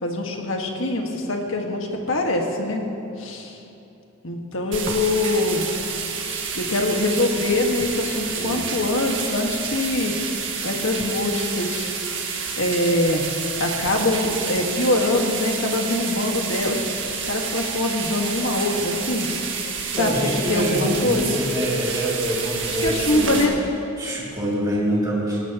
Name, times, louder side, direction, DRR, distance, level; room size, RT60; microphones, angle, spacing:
voice 1, 0.0-2.8 3.2-3.6 4.2-5.7 6.5-10.2 10.6-11.9 12.6-13.2 13.5-19.3 20.0-21.3 22.7-23.6, left 2 dB, 70° left, 1 dB, 1.7 m, -23 dB
sound 1, 4.7-23.5, right 5 dB, 60° right, 1.8 m, -29 dB
voice 2, 8.3-8.6 19.9-23.4 24.0-25.4, right 1 dB, 15° right, -6 dB, 2.7 m, -25 dB
19.0 x 17.0 x 3.0 m, 2.8 s
head